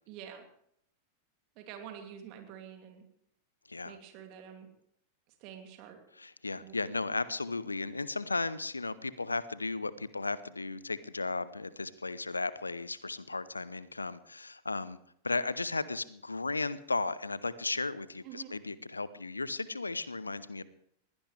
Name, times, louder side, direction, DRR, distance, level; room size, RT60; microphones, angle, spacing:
voice 1, 0.1-0.5 1.6-3.0 3.8-4.7 5.4-6.0 6.6-6.8 18.2-18.5, right 9 dB, 45° right, 4 dB, 2.7 m, -47 dB
voice 2, 6.2-15.0 15.2-20.6, left 3 dB, 80° left, 18 dB, 0.7 m, -35 dB
22.0 x 16.0 x 3.3 m, 0.70 s
figure-of-eight pair, 90°, 0 cm